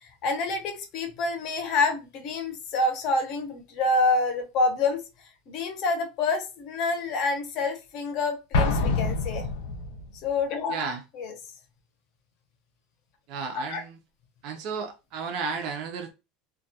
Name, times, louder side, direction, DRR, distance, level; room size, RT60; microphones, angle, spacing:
voice 1, 0.0-5.0 5.5-9.5 10.2-10.8 11.2-11.3 13.5-13.8, left 3 dB, 45° left, 0.6 m, -27 dB
Explosion, 8.5-10.1, left 3 dB, 85° left, 0.5 m, -26 dB
voice 2, 10.7-11.0 13.3-14.0 14.4-16.1, right 5 dB, 45° right, 0.4 m, -33 dB
2.2 x 2.1 x 2.7 m
supercardioid pair, 160°, 0 cm